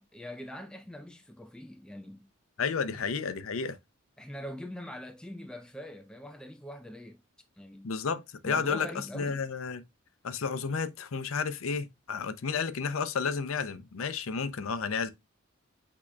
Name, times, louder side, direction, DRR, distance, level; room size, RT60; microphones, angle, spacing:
voice 1, 0.0-2.3 2.9-3.0 4.2-7.2 7.6-7.9 8.4-9.4, equal, 5° left, 0.3 m, -43 dB
voice 2, 2.6-3.8 7.8-9.8 10.2-15.1, left 5 dB, 75° left, 0.5 m, -32 dB
8.4 x 2.8 x 2.2 m
head